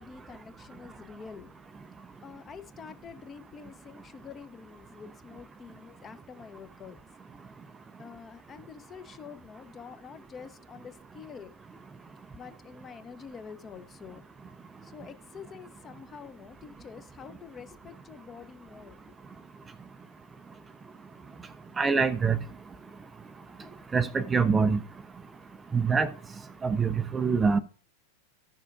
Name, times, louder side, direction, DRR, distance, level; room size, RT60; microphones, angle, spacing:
voice 1, 0.0-1.5 2.2-7.0 8.0-11.5 12.3-14.2 14.8-19.0 23.4-23.8, left 6 dB, 25° left, 0.7 m, -47 dB
voice 2, 21.8-22.4 23.9-24.8 25.7-26.1 26.6-27.6, right 5 dB, 15° right, 0.4 m, -24 dB
14.0 x 6.4 x 2.4 m
figure-of-eight pair, 90°, 0 cm